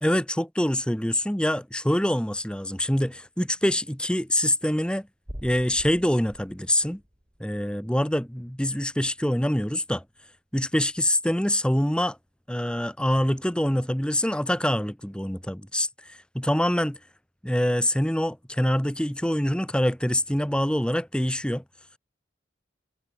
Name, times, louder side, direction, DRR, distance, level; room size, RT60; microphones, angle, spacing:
voice 1, 0.0-5.1 5.4-7.0 7.4-10.0 10.5-12.2 12.5-17.0 17.4-21.6, left 1 dB, 5° left, 1.6 m, -25 dB
sound 1, 5.2-9.0 9.2-9.7 10.2-10.3 11.1-11.2, equal, 35° right, 7.8 m, -45 dB
head